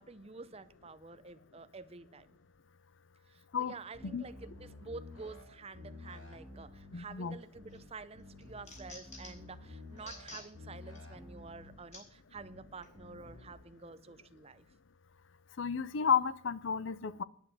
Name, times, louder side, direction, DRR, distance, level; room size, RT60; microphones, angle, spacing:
voice 1, 0.0-2.4 3.3-14.7, right 4 dB, 30° right, 0.6 m, -49 dB
sound 1, 3.9-5.4 5.7-6.9 7.5-7.8 8.1-10.2 10.5-11.7 12.3-12.6 12.9-13.5, left 2 dB, 85° left, 5.6 m, -51 dB
voice 2, 6.9-7.4 15.6-17.2, left 7 dB, 60° left, 0.5 m, -32 dB
sound 2, 7.4-7.8 8.2-9.5 10.0-10.5 11.0-11.1 11.9-12.0 12.8-13.0, left 2 dB, 35° left, 3.9 m, -50 dB
9.7 x 8.8 x 7.2 m
head